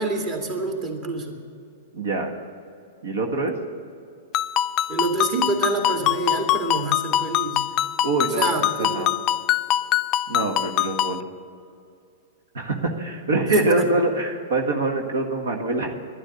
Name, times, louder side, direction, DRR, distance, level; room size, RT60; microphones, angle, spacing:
voice 1, 0.0-1.4 4.9-7.6 8.4-9.1 13.5-13.9, right 3 dB, 35° right, 2 dB, 2.4 m, -27 dB
voice 2, 1.9-2.3 3.0-3.5 8.0-9.1 10.3-11.2 12.5-16.0, right 2 dB, 85° right, 3 dB, 1.7 m, -24 dB
Ringtone, 4.3-11.2, left 12 dB, 35° left, 0.4 m, -24 dB
12.0 x 11.0 x 8.4 m, 2.4 s
hypercardioid pair, 135°, 0 cm